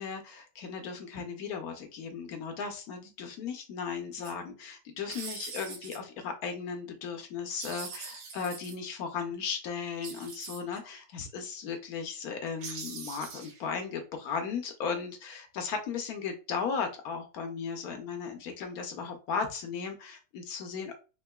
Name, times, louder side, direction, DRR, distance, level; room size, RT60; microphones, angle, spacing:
voice 1, 0.0-21.0, left 6 dB, 70° left, 5 dB, 0.9 m, -36 dB
sound 1, 4.1-4.3 5.1-6.0 7.5-8.7 10.0-10.8 12.6-13.7, right 5 dB, 85° right, 1.6 m, -42 dB
3.7 x 2.9 x 2.2 m, 0.33 s
omnidirectional pair, 2.1 m